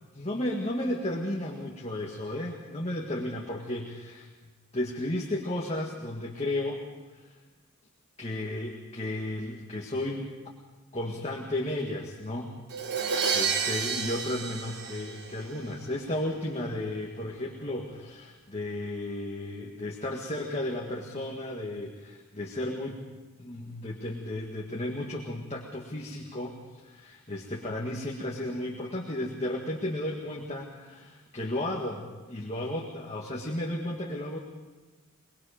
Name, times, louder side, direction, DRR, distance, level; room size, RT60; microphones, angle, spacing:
voice 1, 0.1-4.3 4.7-6.8 8.2-10.3 10.9-12.5 12.9-23.0 23.4-34.4, left 1 dB, 30° left, -1 dB, 1.9 m, -34 dB
Crash cymbal, 12.7-15.7, right 6 dB, 50° right, 1.5 m, -30 dB
23.5 x 22.0 x 5.2 m, 1.3 s
head